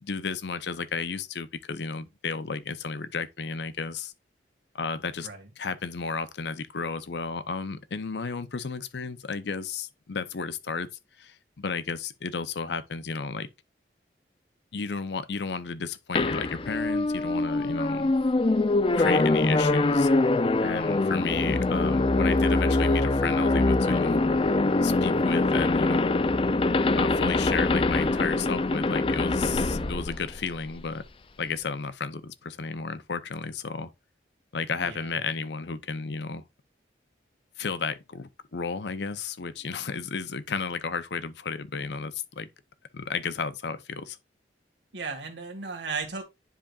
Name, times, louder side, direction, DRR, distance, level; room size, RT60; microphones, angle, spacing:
voice 1, 0.0-4.1 4.7-5.3 5.6-10.9 11.2-13.5 14.7-18.1 18.9-20.1 20.6-24.2 24.8-26.1 26.9-31.0 31.4-33.9 34.5-36.4 37.6-42.5 42.9-44.2, left 5 dB, 70° left, 0.6 m, -33 dB
sound 1, 16.2-30.9, left 2 dB, 30° left, 0.4 m, -24 dB
voice 2, 34.8-35.2 44.9-46.2, right 4 dB, 80° right, 1.9 m, -35 dB
10.0 x 5.0 x 2.4 m
head